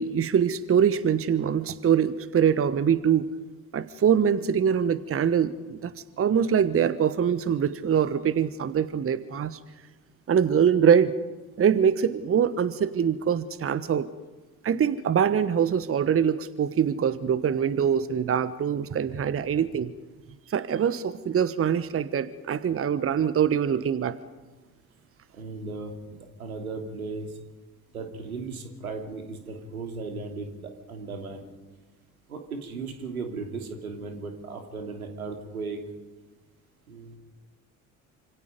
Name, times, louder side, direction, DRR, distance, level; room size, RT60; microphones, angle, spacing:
voice 1, 0.0-3.3 3.7-5.9 6.2-9.6 10.3-11.2 11.6-14.1 14.6-19.9 20.5-24.2, right 8 dB, 30° right, 15 dB, 1.2 m, -23 dB
voice 2, 25.3-27.4 27.9-31.5 32.3-35.8 36.9-37.2, right 4 dB, 80° right, 5 dB, 3.0 m, -36 dB
28.5 x 26.5 x 5.2 m, 1.2 s
figure-of-eight pair, 50°, 43 cm